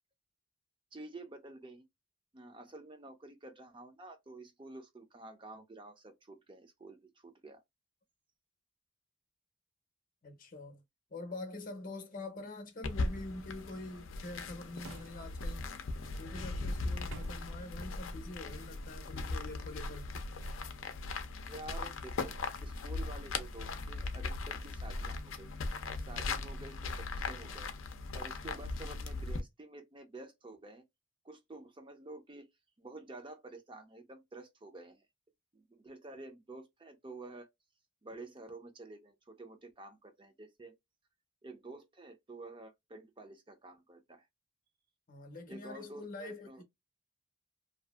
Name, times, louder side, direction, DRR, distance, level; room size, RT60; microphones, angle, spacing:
voice 1, 0.9-1.8 2.3-7.6 21.5-25.5 25.9-27.7 28.1-30.8 31.2-32.5 32.8-35.1 35.5-37.5 38.0-40.8 41.4-44.3 45.5-46.6, right 2 dB, 25° right, 0.4 m, -50 dB
voice 2, 10.2-10.8 11.1-15.7 16.2-20.2 27.4-27.5 45.1-46.6, left 2 dB, 45° left, 0.7 m, -45 dB
sound 1, 12.8-29.4, left 3 dB, 80° left, 0.5 m, -39 dB
sound 2, 14.8-15.6 17.1-17.6, right 3 dB, 80° right, 0.5 m, -50 dB
2.6 x 2.4 x 2.2 m
head